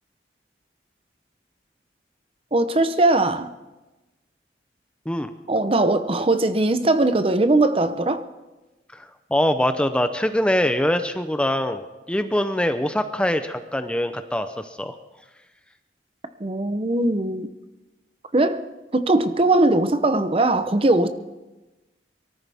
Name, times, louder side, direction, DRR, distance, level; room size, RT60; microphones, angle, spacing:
voice 1, 2.5-3.5 5.5-8.2 16.4-17.5 18.3-18.7 18.9-21.1, right 2 dB, 30° right, 10 dB, 0.7 m, -20 dB
voice 2, 8.9-15.0, left 1 dB, 5° left, 8 dB, 0.6 m, -23 dB
23.0 x 14.0 x 3.5 m, 1.1 s
head